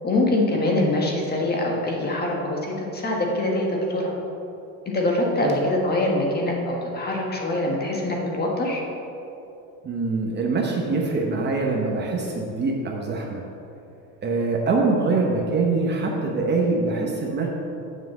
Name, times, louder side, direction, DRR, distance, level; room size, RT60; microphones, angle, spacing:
voice 1, 0.0-4.1 4.9-8.8, left 1 dB, 25° left, -1 dB, 1.5 m, -24 dB
voice 2, 9.8-13.4 14.2-17.5, right 3 dB, 25° right, -1 dB, 0.9 m, -24 dB
7.5 x 5.9 x 7.1 m, 2.8 s
cardioid pair, 140°, 39 cm